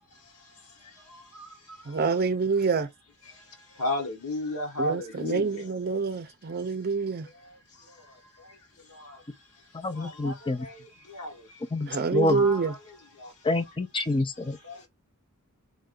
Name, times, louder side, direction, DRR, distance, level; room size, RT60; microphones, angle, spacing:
voice 1, 1.9-2.9 4.8-7.3 11.9-12.7, right 4 dB, 45° right, 0.6 m, -26 dB
voice 2, 3.8-5.5 10.2-10.3 11.2-11.3 12.3-12.6, left 2 dB, 85° left, 1.3 m, -31 dB
voice 3, 9.7-10.7 11.7-12.4 13.4-14.6, left 2 dB, 20° left, 0.5 m, -27 dB
3.2 x 2.6 x 3.7 m
head